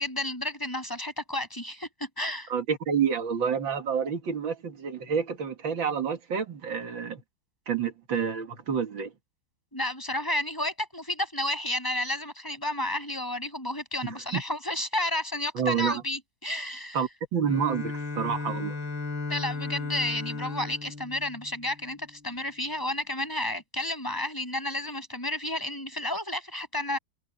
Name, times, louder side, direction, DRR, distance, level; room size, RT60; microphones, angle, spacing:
voice 1, 0.0-2.5 9.7-17.0 19.3-27.0, left 1 dB, 10° left, 6.5 m, -31 dB
voice 2, 2.5-7.2 7.7-9.1 14.0-14.4 15.5-16.0 16.9-18.8, right 7 dB, 75° right, 2.7 m, -29 dB
Bowed string instrument, 17.5-22.2, left 3 dB, 80° left, 4.6 m, -35 dB
omnidirectional pair, 2.2 m